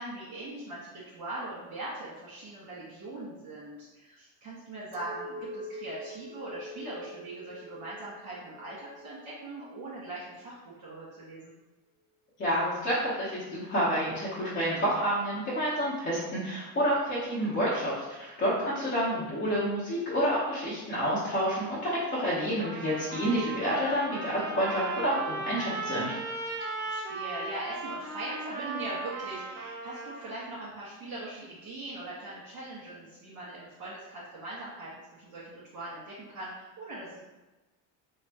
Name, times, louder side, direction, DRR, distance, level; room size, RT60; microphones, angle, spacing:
voice 1, 0.0-11.5 18.7-18.8 26.8-37.2, right 2 dB, 50° right, -11 dB, 1.4 m, -41 dB
Chink clink, 4.9-10.4, equal, 75° right, 0.6 m, -45 dB
voice 2, 12.4-26.1, equal, 30° left, -9 dB, 0.8 m, -29 dB
Trumpet, 22.6-30.3, right 2 dB, 25° right, 0.4 m, -37 dB
4.1 x 2.1 x 2.8 m, 1.1 s
cardioid pair, 140°, 40 cm